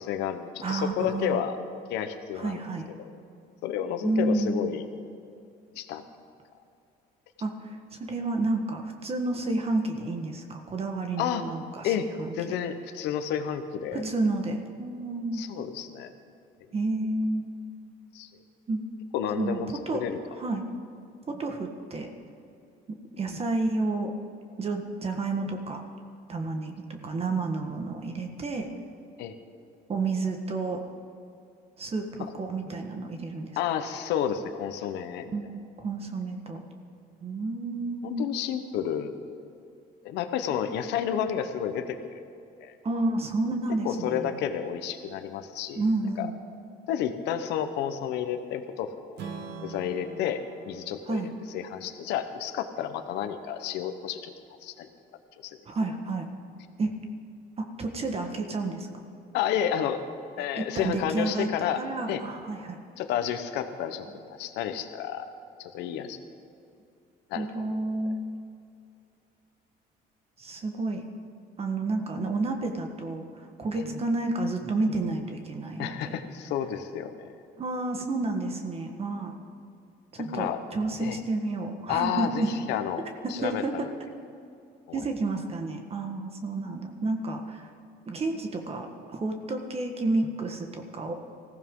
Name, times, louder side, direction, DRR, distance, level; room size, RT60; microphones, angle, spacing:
voice 1, 0.0-1.6 1.9-2.6 3.0-3.1 3.6-4.8 5.7-6.0 11.2-11.4 11.8-12.1 12.3-14.0 15.3-16.1 18.1-18.3 19.1-19.7 19.9-20.2 29.2-29.3 32.2-32.3 33.6-35.3 38.0-39.4 40.0-42.2 42.6-42.7 43.8-45.8 46.2-46.3 46.9-49.2 49.6-51.2 51.5-54.3 54.6-54.9 55.4-55.6 59.3-60.0 60.4-61.8 62.1-62.2 63.0-65.3 65.6-66.2 67.3-67.7 75.8-77.3 80.3-80.6 81.0-81.2 81.9-83.0 83.3-83.9 84.9-85.0, left 9 dB, 90° left, 9 dB, 1.0 m, -31 dB
voice 2, 0.6-1.4 2.4-2.9 4.0-4.8 7.4-12.5 13.9-15.4 16.7-17.5 18.7-18.8 19.4-20.0 20.3-20.6 21.3-22.1 23.1-24.1 24.6-25.8 26.3-28.7 29.9-30.8 31.8-33.6 35.3-36.6 37.2-38.3 42.8-44.5 45.7-46.3 51.1-51.3 55.7-56.3 56.8-56.9 57.6-59.0 60.5-62.8 67.3-68.2 70.4-71.0 71.6-76.2 77.6-79.3 80.1-82.5 83.2-83.9 84.9-87.7 88.1-91.1, right 2 dB, 35° right, 4 dB, 1.5 m, -30 dB
Strum, 49.2-53.4, right 4 dB, 85° right, 1.5 m, -44 dB
20.0 x 15.0 x 3.8 m, 2.5 s
cardioid pair, 110°, 17 cm